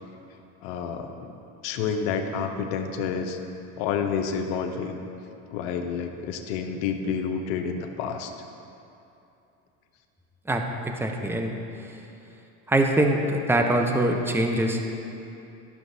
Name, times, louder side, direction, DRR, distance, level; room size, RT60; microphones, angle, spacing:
voice 1, 0.6-1.3 1.6-3.4 3.8-5.0 5.5-8.3, left 6 dB, 75° left, 5 dB, 0.8 m, -29 dB
voice 2, 10.5-11.5 12.7-14.8, right 1 dB, 5° right, 3 dB, 0.6 m, -23 dB
12.0 x 6.0 x 2.7 m, 2.8 s
supercardioid pair, 95°, 38 cm